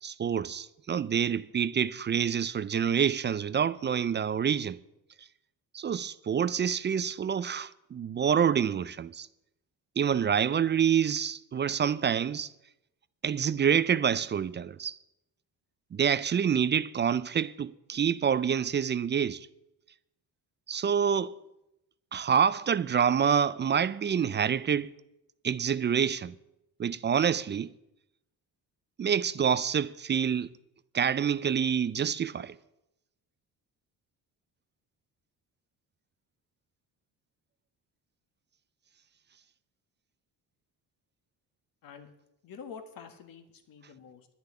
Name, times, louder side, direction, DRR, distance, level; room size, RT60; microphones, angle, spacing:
voice 1, 0.0-4.8 5.7-9.3 10.0-12.5 13.2-15.0 15.9-19.5 20.7-21.4 22.1-24.9 25.4-26.3 26.8-27.7 29.0-30.5 30.9-32.6, right 8 dB, 30° right, 0.4 m, -27 dB
voice 2, 42.4-44.3, left 6 dB, 60° left, 1.8 m, -47 dB
11.0 x 6.9 x 9.6 m
cardioid pair, 100°, 38 cm